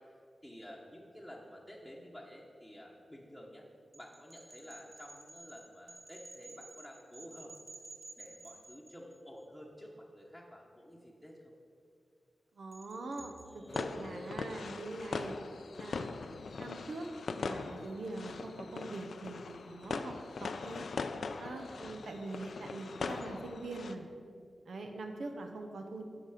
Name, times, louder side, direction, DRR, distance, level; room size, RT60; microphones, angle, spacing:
voice 1, 0.0-3.6 3.9-7.6 8.2-11.5 13.4-14.4 21.2-21.7, equal, ahead, -3 dB, 1.1 m, -51 dB
sound 1, 3.9-9.4 12.7-13.8, right 2 dB, 45° right, 1.5 m, -53 dB
voice 2, 12.5-15.4 15.8-16.1 16.6-17.1 17.4-19.4 19.6-20.9 21.4-24.1 24.7-26.0, right 2 dB, 85° right, 4 dB, 0.9 m, -43 dB
sound 2, 13.7-23.9, left 4 dB, 80° left, 0.4 m, -41 dB
10.5 x 6.7 x 5.0 m, 2.3 s
wide cardioid pair, 90°, 0 cm